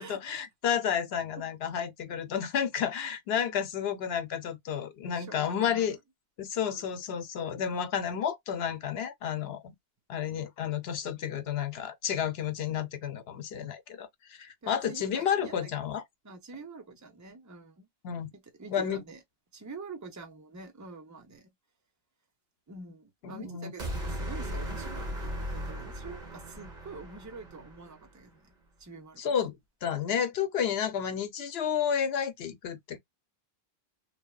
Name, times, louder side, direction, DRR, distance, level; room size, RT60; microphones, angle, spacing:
voice 1, 0.0-6.0 6.4-9.7 10.1-16.0 18.0-18.3 18.7-19.0 23.2-23.7 29.2-33.0, left 8 dB, 75° left, 0.9 m, -31 dB
voice 2, 5.1-6.0 6.7-6.9 14.6-15.7 16.2-17.9 18.6-19.2 19.5-21.5 22.7-28.5 28.8-29.5, right 4 dB, 20° right, 0.6 m, -46 dB
sound 1, 23.8-28.1, equal, 45° right, 1.2 m, -37 dB
3.3 x 2.1 x 2.2 m
omnidirectional pair, 1.0 m